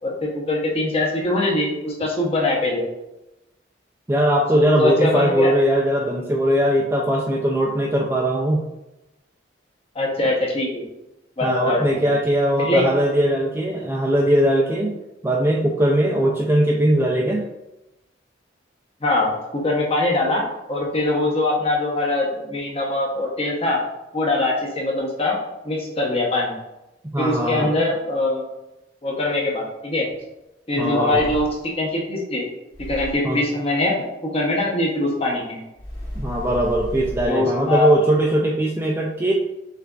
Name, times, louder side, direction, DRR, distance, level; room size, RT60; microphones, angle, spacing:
voice 1, 0.0-2.9 4.5-5.5 9.9-10.9 11.4-11.8 12.6-12.9 19.0-23.8 24.1-25.4 25.6-26.5 27.2-28.4 29.0-30.1 30.7-31.5 31.8-32.4 32.9-34.0 34.3-35.6 37.2-37.9, left 2 dB, 30° left, -2 dB, 0.8 m, -22 dB
voice 2, 4.1-8.6 11.4-15.0 15.2-17.4 27.1-27.8 30.8-31.3 33.2-33.4 36.2-39.3, right 1 dB, 10° right, -1 dB, 0.3 m, -20 dB
sound 1, 31.1-31.8 32.7-33.3 35.7-37.3, left 1 dB, 85° left, 1.4 m, -33 dB
6.4 x 2.4 x 2.3 m, 0.94 s
head